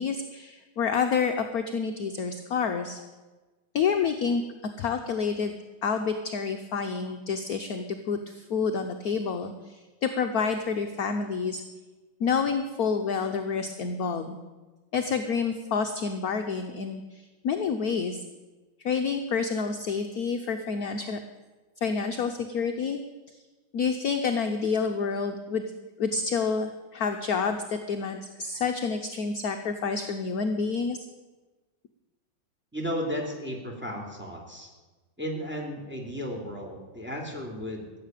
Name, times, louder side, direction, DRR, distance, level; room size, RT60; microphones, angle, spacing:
voice 1, 0.0-3.0 3.7-4.4 4.8-5.5 5.8-11.6 12.2-14.4 14.9-18.2 18.8-21.2 21.8-23.0 23.3-23.4 23.7-25.7 26.0-31.0, left 5 dB, 60° left, 6 dB, 1.1 m, -28 dB
voice 2, 32.7-34.7 35.2-37.9, equal, 5° right, 1 dB, 2.5 m, -34 dB
15.0 x 7.6 x 9.0 m, 1.2 s
omnidirectional pair, 2.2 m